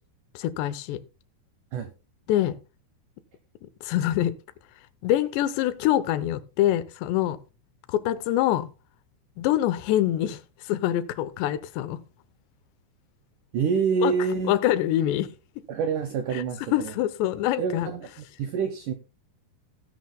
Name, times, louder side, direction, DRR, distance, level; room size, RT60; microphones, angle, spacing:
voice 1, 0.4-1.0 2.3-2.6 3.8-4.3 5.0-7.4 7.9-8.7 9.4-12.0 14.0-14.1 14.5-15.3 16.3-16.4 16.7-17.9, left 13 dB, 90° left, 3.0 m, -25 dB
voice 2, 13.5-14.6 15.7-16.9 17.6-18.1 18.4-18.9, right 5 dB, 80° right, 1.8 m, -26 dB
17.0 x 9.4 x 2.2 m
omnidirectional pair, 4.9 m